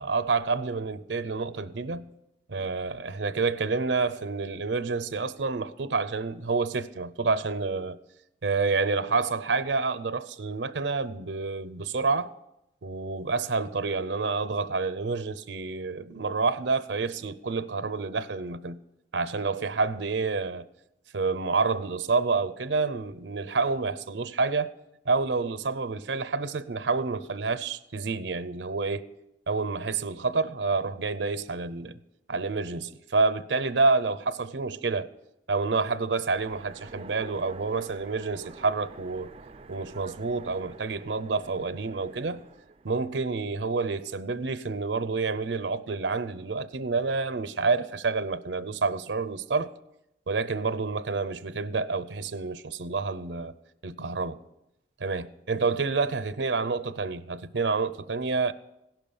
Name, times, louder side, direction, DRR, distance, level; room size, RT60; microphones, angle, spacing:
voice 1, 0.0-2.1 2.5-8.0 8.4-12.3 12.8-18.8 19.1-20.6 21.1-24.7 25.0-29.0 29.5-32.0 32.3-35.1 35.5-39.3 39.7-42.4 42.8-49.7 50.3-53.5 53.8-54.4 55.0-58.5, right 4 dB, 90° right, 0.6 m, -28 dB
Train, 36.4-43.3, right 3 dB, 35° right, 0.5 m, -48 dB
16.5 x 6.0 x 7.1 m
head